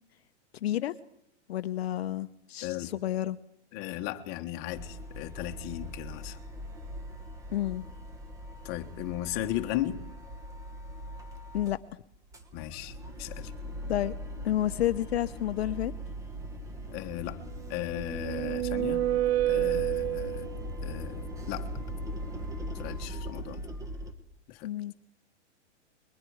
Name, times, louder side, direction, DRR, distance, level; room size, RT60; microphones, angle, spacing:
voice 1, 0.6-1.0 1.5-3.4 7.5-7.8 11.5-11.8 13.9-14.1 14.4-15.9 24.6-24.9, left 13 dB, 60° left, 10 dB, 0.9 m, -30 dB
voice 2, 3.7-6.4 8.6-10.0 12.5-13.5 16.9-17.4 17.7-19.0 19.5-20.5 20.8-21.7 22.7-23.7 24.5-24.7, left 14 dB, 25° left, 7 dB, 1.4 m, -36 dB
sound 1, 4.7-11.8 12.1-24.1, equal, 10° right, 1.5 m, -40 dB
sound 2, 17.7-20.7, right 13 dB, 60° right, 0.8 m, -29 dB
29.5 x 21.5 x 4.8 m, 0.78 s
hypercardioid pair, 160°, 35 cm